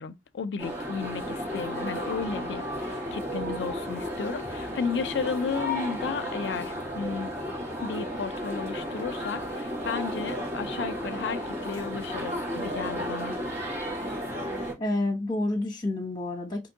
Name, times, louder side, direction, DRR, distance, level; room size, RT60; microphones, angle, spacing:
voice 1, 0.0-7.3 7.8-13.4, left 5 dB, 70° left, 0.4 m, -33 dB
sound 1, 0.6-14.7, equal, 40° right, 2.2 m, -33 dB
voice 2, 14.8-16.7, left 2 dB, 25° left, 1.0 m, -29 dB
4.3 x 2.9 x 2.7 m
head